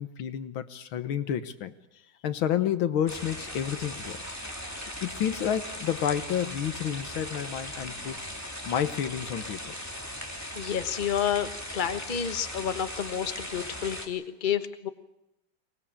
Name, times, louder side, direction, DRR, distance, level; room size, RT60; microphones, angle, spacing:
voice 1, 0.0-1.7 2.2-4.2 5.0-8.2 8.7-9.8, left 9 dB, 85° left, 11 dB, 2.0 m, -30 dB
sound 1, 3.1-14.1, equal, 10° left, 2.8 m, -38 dB
voice 2, 10.5-14.9, left 9 dB, 30° left, 9 dB, 1.1 m, -30 dB
24.0 x 19.5 x 8.8 m, 0.90 s
omnidirectional pair, 2.2 m